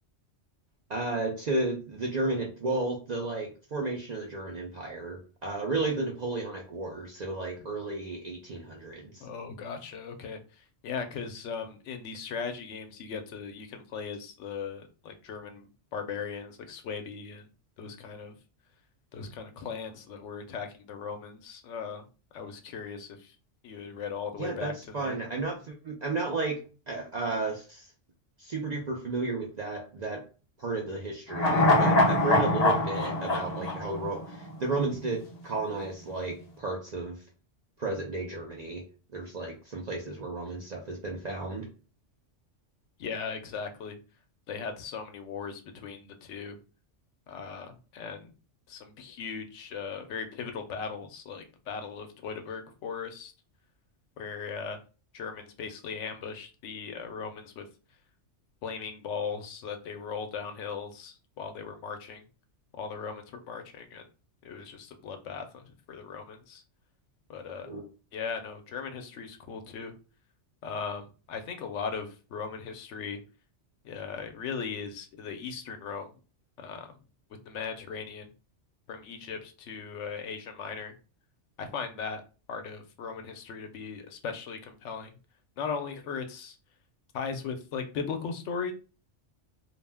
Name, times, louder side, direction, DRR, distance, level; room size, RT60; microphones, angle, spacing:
voice 1, 0.9-9.3 24.4-27.9 28.4-30.2 30.6-37.2 37.8-38.8 39.1-41.7 67.6-67.9, right 3 dB, 60° right, 0 dB, 0.4 m, -33 dB
voice 2, 9.2-17.5 17.8-18.3 19.1-22.0 22.3-23.3 23.6-25.2 43.0-44.0 44.5-46.6 47.3-48.3 48.7-53.3 54.2-54.8 55.1-57.7 58.6-62.2 62.8-64.0 64.4-66.6 67.3-67.7 68.1-69.9 70.6-73.2 73.8-76.1 76.6-76.9 77.5-78.3 78.9-80.9 81.6-82.2 82.5-85.1 85.6-86.6 87.1-88.7, left 6 dB, 80° left, 6 dB, 0.9 m, -38 dB
sound 1, 31.3-34.7 35.0-35.1, left 2 dB, 45° left, 0.5 m, -24 dB
2.4 x 2.1 x 3.3 m, 0.34 s
omnidirectional pair, 1.2 m